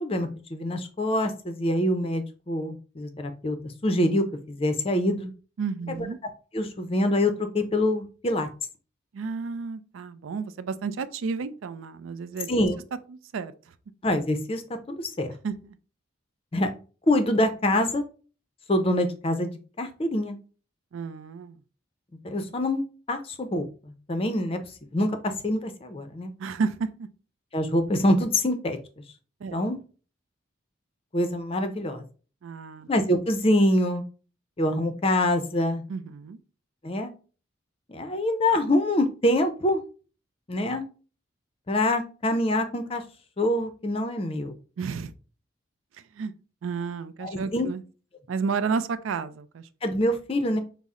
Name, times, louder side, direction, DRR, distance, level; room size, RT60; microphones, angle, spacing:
voice 1, 0.0-3.6 3.8-5.3 5.9-6.1 6.5-8.5 12.5-12.8 14.0-14.6 14.9-15.3 16.5-16.7 17.1-18.0 18.7-19.5 19.8-20.4 22.2-22.8 23.1-23.6 24.1-24.6 24.9-26.3 27.5-28.8 29.5-29.8 31.1-32.0 32.9-34.0 34.6-35.8 36.8-37.1 37.9-39.8 40.5-40.8 41.7-43.0 43.4-44.6 47.2-47.7 49.8-50.6, left 1 dB, 30° left, 7 dB, 0.5 m, -25 dB
voice 2, 5.6-6.2 9.1-12.5 13.3-13.5 15.4-15.8 20.9-21.6 26.4-27.1 29.4-29.6 32.4-32.9 35.9-36.4 44.8-45.1 46.2-46.3 46.6-47.8 48.3-49.7, right 5 dB, 85° right, 13 dB, 0.4 m, -31 dB
5.5 x 2.0 x 3.6 m, 0.37 s
head